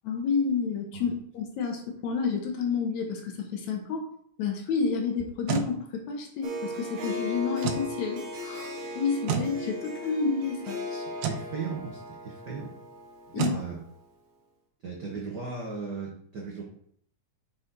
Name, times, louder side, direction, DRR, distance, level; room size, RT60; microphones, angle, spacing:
voice 1, 0.0-4.1 4.4-10.8 13.3-13.5, left 5 dB, 70° left, 2 dB, 2.3 m, -30 dB
sound 1, 5.2-5.7 7.6-7.9 9.3-9.5 11.2-11.5 13.4-13.6, right 8 dB, 90° right, 2.3 m, -29 dB
Harp, 6.4-13.9, left 1 dB, 50° right, 1.8 m, -37 dB
voice 2, 10.9-12.7 13.3-13.8 14.8-16.6, right 4 dB, 70° right, -2 dB, 0.9 m, -37 dB
6.3 x 6.1 x 4.0 m, 0.65 s
omnidirectional pair, 3.6 m